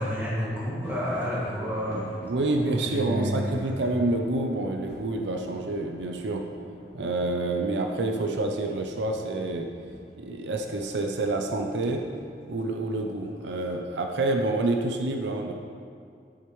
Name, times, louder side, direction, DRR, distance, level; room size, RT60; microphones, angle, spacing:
voice 1, 0.0-2.1 2.6-3.8, equal, 10° right, -8 dB, 2.2 m, -30 dB
sound 1, 0.8-13.6, equal, 80° left, 1.1 m, -49 dB
voice 2, 2.2-6.4 6.9-9.7 10.2-12.0 12.5-15.5, right 2 dB, 85° right, 3 dB, 0.6 m, -28 dB
10.5 x 7.5 x 3.2 m, 2.4 s
head